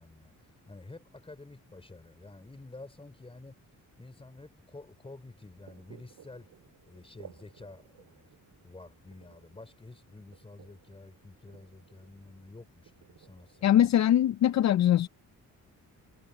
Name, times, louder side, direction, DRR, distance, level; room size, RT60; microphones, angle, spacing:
voice 1, 0.0-3.6 4.0-6.5 6.9-13.7, left 2 dB, 15° left, 4.3 m, -50 dB
sound 1, 5.5-13.7, right 10 dB, 75° right, 5.2 m, -58 dB
voice 2, 13.6-15.1, left 11 dB, 55° left, 0.6 m, -22 dB
cardioid pair, 110°, 33 cm